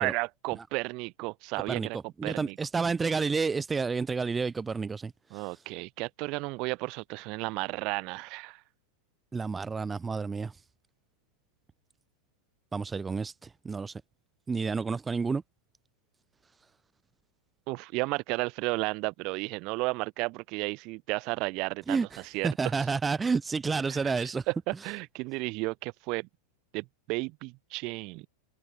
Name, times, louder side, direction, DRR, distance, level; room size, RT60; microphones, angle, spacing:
voice 1, 0.0-2.0 2.2-2.6 5.3-8.6 17.7-22.5 23.9-26.3 26.7-28.3, right 26 dB, 40° right, 1.8 m, -33 dB
voice 2, 1.7-5.5 9.3-10.5 12.7-14.0 14.5-15.4 21.9-24.4, right 4 dB, 15° right, 1.3 m, -30 dB
figure-of-eight pair, 90°, 0 cm